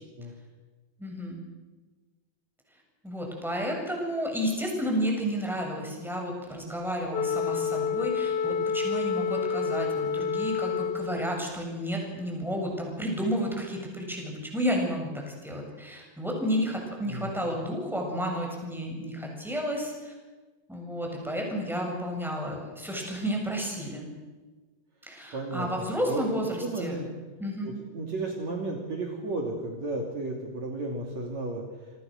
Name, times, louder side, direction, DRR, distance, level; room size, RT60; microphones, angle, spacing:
voice 1, 1.0-1.4 3.0-20.1 20.7-24.1 25.1-27.0 27.4-27.7, equal, ahead, 0 dB, 7.3 m, -31 dB
Wind instrument woodwind instrument, 7.1-11.5, left 6 dB, 90° left, 1.2 m, -29 dB
voice 2, 17.1-17.5 25.3-26.2 26.6-27.1 27.6-31.6, right 2 dB, 50° right, 0 dB, 4.0 m, -33 dB
27.5 x 25.5 x 6.6 m, 1.3 s
omnidirectional pair, 4.1 m